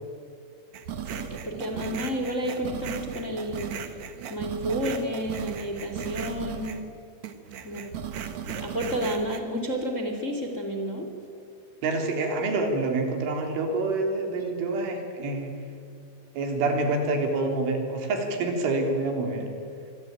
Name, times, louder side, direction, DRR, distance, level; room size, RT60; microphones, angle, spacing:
sound 1, 0.7-6.9 7.2-9.4, right 8 dB, 60° right, 1.9 m, -36 dB
voice 1, 1.1-3.7 4.3-6.8 7.6-7.8 8.4-11.1, equal, 20° left, 4 dB, 2.3 m, -31 dB
voice 2, 11.8-15.5 16.4-19.5, right 2 dB, 90° right, 3 dB, 5.8 m, -27 dB
26.5 x 23.0 x 9.5 m, 2.3 s
omnidirectional pair, 5.4 m